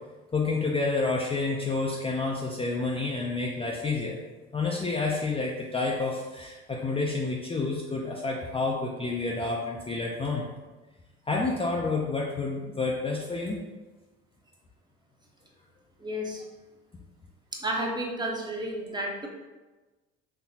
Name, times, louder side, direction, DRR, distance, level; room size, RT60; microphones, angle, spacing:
voice 1, 0.3-4.2 4.5-10.5 11.3-13.6, left 3 dB, 20° left, -2 dB, 0.5 m, -29 dB
voice 2, 16.0-16.4 17.5-19.3, right 1 dB, 15° right, -1 dB, 0.8 m, -32 dB
4.0 x 2.9 x 2.8 m, 1.2 s
hypercardioid pair, 70°, 30 cm